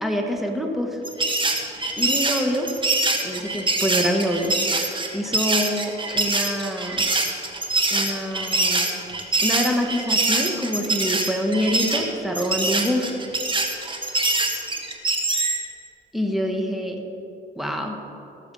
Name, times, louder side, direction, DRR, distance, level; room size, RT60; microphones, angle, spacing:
voice 1, 0.0-1.0 2.0-2.7 3.2-4.5 5.1-7.0 7.9-9.0 9.4-13.2 16.1-17.0 17.6-18.0, equal, ahead, 2 dB, 1.7 m, -26 dB
sound 1, 1.0-15.6, right 2 dB, 25° right, 1.6 m, -24 dB
18.0 x 7.2 x 5.6 m, 2.9 s
cardioid pair, 90°, 20 cm